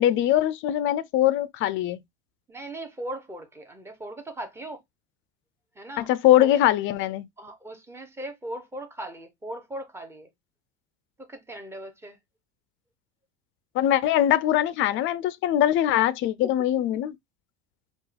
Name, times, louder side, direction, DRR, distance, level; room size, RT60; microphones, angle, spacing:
voice 1, 0.0-2.0 6.0-7.3 13.7-17.1, left 12 dB, 40° left, 0.4 m, -22 dB
voice 2, 2.5-4.8 5.8-6.1 6.4-6.6 7.4-10.3 11.3-12.2, right 1 dB, 10° right, 0.9 m, -38 dB
4.5 x 2.4 x 3.2 m
supercardioid pair, 135°, 32 cm